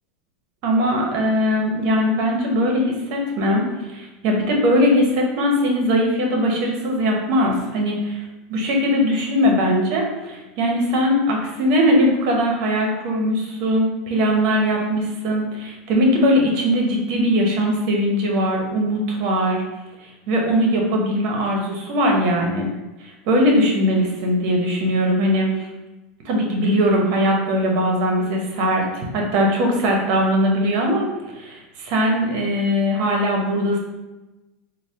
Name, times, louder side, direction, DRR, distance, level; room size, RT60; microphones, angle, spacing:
voice 1, 0.6-8.2 8.5-19.6 20.0-22.7 23.3-25.7 26.2-28.9 29.1-33.8, equal, 60° right, 0 dB, 0.9 m, -20 dB
4.1 x 2.1 x 3.3 m, 1.1 s
supercardioid pair, 120°, 0 cm